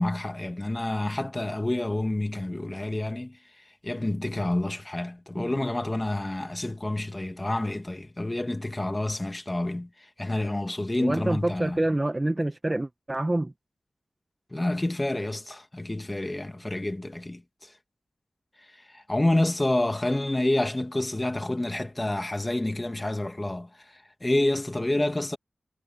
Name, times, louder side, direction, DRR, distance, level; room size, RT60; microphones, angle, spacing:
voice 1, 0.0-11.8 14.5-17.7 18.9-25.4, left 1 dB, 20° left, 2.4 m, -28 dB
voice 2, 11.0-13.5, right 1 dB, 25° right, 1.5 m, -27 dB
wide cardioid pair, 60°, 0 cm